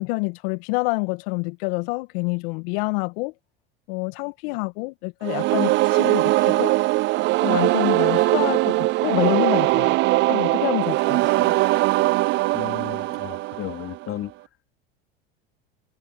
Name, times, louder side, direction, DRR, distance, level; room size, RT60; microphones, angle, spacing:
voice 1, 0.0-3.3 3.9-6.7 7.4-10.0 10.3-11.6, left 29 dB, 65° left, 1.9 m, -27 dB
sound 1, 5.2-14.1, right 20 dB, 40° right, 0.4 m, -21 dB
voice 2, 12.5-14.3, left 13 dB, 45° left, 3.8 m, -34 dB
hypercardioid pair, 85°, 31 cm